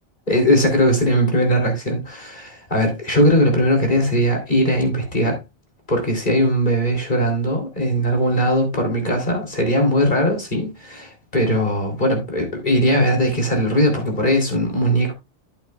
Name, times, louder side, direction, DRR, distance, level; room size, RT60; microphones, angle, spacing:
voice 1, 0.3-5.4 5.9-15.1, equal, 40° left, 3.5 m, -19 dB
12.5 x 8.4 x 2.3 m
omnidirectional pair, 1.3 m